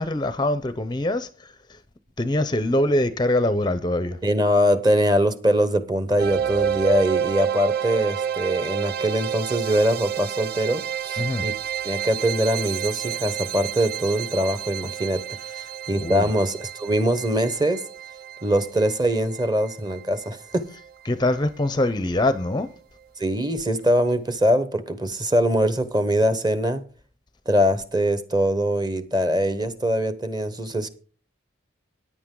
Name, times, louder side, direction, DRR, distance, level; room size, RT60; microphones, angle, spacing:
voice 1, 0.0-1.8 2.2-4.2 11.2-11.5 16.0-16.3 21.1-22.7, left 1 dB, 20° left, 0.5 m, -23 dB
voice 2, 4.2-11.5 11.8-15.2 15.9-17.8 18.4-20.6 23.2-26.8 27.5-30.9, equal, 20° right, 0.9 m, -22 dB
sound 1, 6.2-21.2, right 8 dB, 50° right, 0.4 m, -30 dB
14.5 x 10.0 x 3.8 m
head